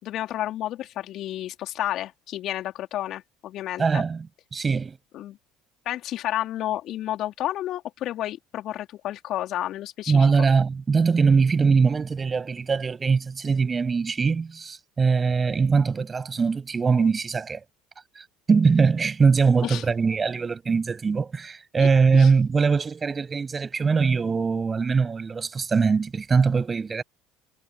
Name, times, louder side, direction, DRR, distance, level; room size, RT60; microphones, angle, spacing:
voice 1, 0.0-4.0 5.1-5.4 5.9-10.3 19.6-19.8 21.8-22.3, left 13 dB, 50° left, 4.1 m, -31 dB
voice 2, 3.8-4.3 4.5-5.0 10.1-17.6 18.2-18.3 18.5-27.0, right 5 dB, 25° right, 7.6 m, -22 dB
hypercardioid pair, 65°, 0 cm